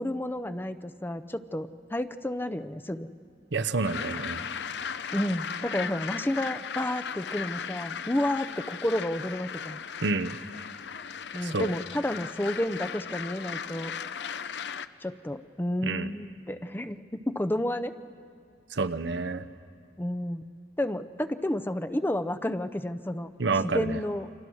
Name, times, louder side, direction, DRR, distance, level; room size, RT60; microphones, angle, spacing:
voice 1, 0.0-3.1 5.1-9.8 11.3-13.9 15.0-17.9 20.0-20.5 20.8-23.3 23.6-24.3, left 1 dB, 10° left, 10 dB, 0.6 m, -31 dB
voice 2, 3.5-4.5 10.0-10.4 11.4-11.7 15.8-16.1 18.7-19.4 23.4-24.0, right 3 dB, 85° right, 12 dB, 0.9 m, -29 dB
sound 1, 3.8-14.9, left 7 dB, 70° left, 0.6 m, -37 dB
28.5 x 26.0 x 6.3 m, 2.3 s
head